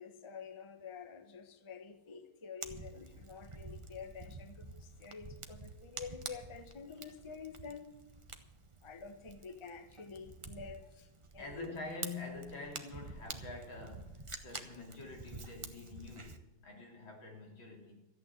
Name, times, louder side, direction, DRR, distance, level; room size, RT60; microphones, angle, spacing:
voice 1, 0.0-7.9 8.8-11.8, left 5 dB, 20° left, 8 dB, 0.9 m, -48 dB
Fire, 2.6-16.4, right 3 dB, 25° right, 0.6 m, -49 dB
voice 2, 11.4-18.0, left 3 dB, 90° left, 0 dB, 4.0 m, -46 dB
14.0 x 8.9 x 7.6 m, 1.0 s
omnidirectional pair, 2.1 m